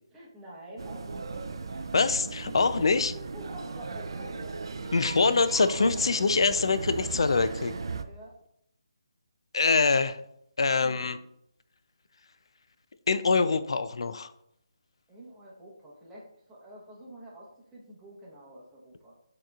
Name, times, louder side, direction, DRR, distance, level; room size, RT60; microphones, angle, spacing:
voice 1, 0.1-1.3 2.9-5.4 8.0-8.4 10.8-11.2 15.1-19.2, right 1 dB, 5° right, -6 dB, 0.9 m, -48 dB
sound 1, 0.8-8.0, right 4 dB, 60° right, 0.4 m, -37 dB
voice 2, 1.9-3.1 4.9-7.7 9.5-10.2 10.6-11.2 13.1-14.3, left 4 dB, 65° left, 12 dB, 0.4 m, -24 dB
6.3 x 2.9 x 2.4 m, 0.76 s
figure-of-eight pair, 160°, 3 cm